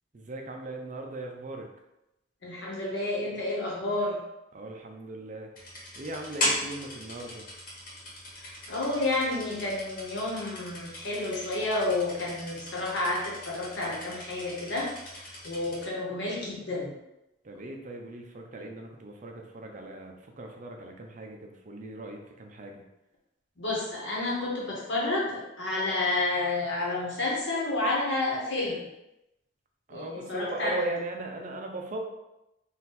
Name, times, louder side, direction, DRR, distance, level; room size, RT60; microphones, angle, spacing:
voice 1, 0.1-1.7 4.5-5.5 6.0-7.4 17.4-22.8 29.9-32.0, right 2 dB, 40° right, 2 dB, 0.5 m, -38 dB
voice 2, 2.4-4.2 8.4-16.9 23.6-28.8 29.9-30.8, left 2 dB, 65° left, -4 dB, 1.3 m, -30 dB
sound 1, 5.6-15.9, left 1 dB, 45° left, 1.3 m, -38 dB
4.0 x 2.6 x 4.1 m, 0.91 s
head